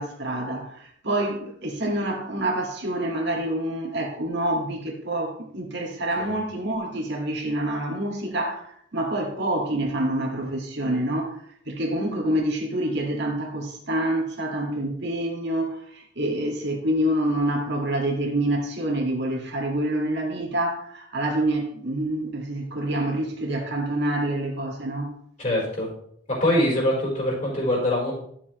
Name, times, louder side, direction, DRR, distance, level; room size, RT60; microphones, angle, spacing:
voice 1, 0.0-11.4 11.6-25.1, right 1 dB, 60° right, 0 dB, 1.8 m, -27 dB
voice 2, 25.4-25.9 26.3-28.1, left 1 dB, 40° left, -4 dB, 4.0 m, -23 dB
11.0 x 7.3 x 3.0 m, 0.67 s
head